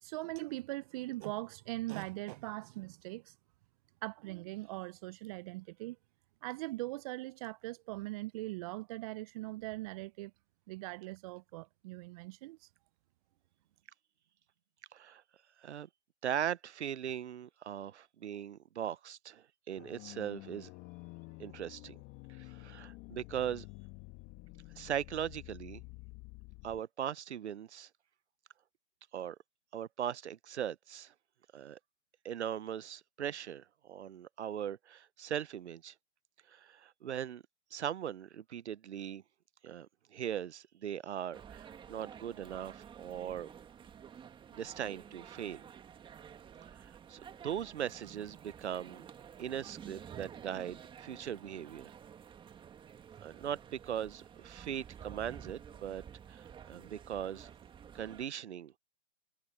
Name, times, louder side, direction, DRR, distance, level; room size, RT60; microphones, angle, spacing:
voice 1, 0.0-3.3 4.0-6.0 6.4-10.3 10.7-12.6, right 20 dB, 30° right, 0.6 m, -41 dB
voice 2, 14.9-15.2 15.6-15.9 16.2-20.7 21.4-22.0 22.4-23.6 24.8-25.8 26.6-27.9 29.1-29.4 29.7-31.1 31.5-31.8 32.2-35.9 36.5-37.4 37.7-39.2 39.6-43.5 44.5-45.7 46.6-49.1 49.4-51.9 53.2-56.0 56.3-57.5 57.9-58.7, right 9 dB, 70° right, 0.9 m, -39 dB
sound 1, 19.8-26.8, left 25 dB, 30° left, 2.1 m, -50 dB
sound 2, 41.3-58.2, right 8 dB, 15° right, 1.8 m, -51 dB
hypercardioid pair, 130°, 35 cm